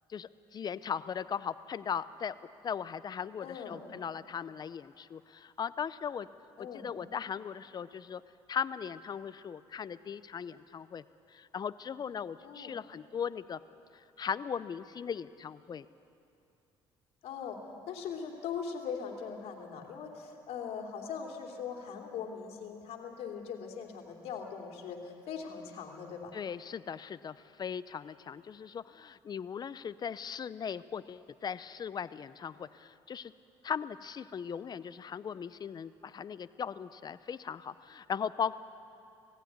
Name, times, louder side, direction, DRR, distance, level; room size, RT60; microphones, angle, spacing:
voice 1, 0.1-2.3 2.6-6.3 6.6-8.2 8.5-11.0 11.3-13.6 13.9-15.9 26.3-33.3 33.6-38.6, left 7 dB, 40° left, 15 dB, 0.7 m, -38 dB
voice 2, 3.4-3.8 6.6-6.9 12.4-12.7 17.2-17.6 17.9-26.3, left 6 dB, 70° left, 2 dB, 3.0 m, -40 dB
18.0 x 15.5 x 9.5 m, 2.6 s
cardioid pair, 90°, 11 cm